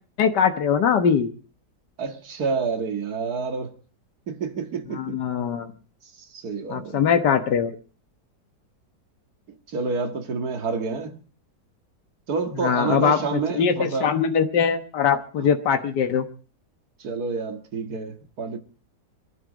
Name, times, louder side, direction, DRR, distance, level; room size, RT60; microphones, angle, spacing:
voice 1, 0.2-1.3 4.9-5.7 6.7-7.7 12.6-16.3, left 7 dB, 75° left, 1.8 m, -22 dB
voice 2, 2.0-3.8 4.3-5.2 6.2-7.0 9.5-11.2 12.3-14.1 15.4-15.5 17.0-18.6, right 4 dB, 60° right, 2.2 m, -29 dB
22.5 x 11.5 x 5.1 m
omnidirectional pair, 1.8 m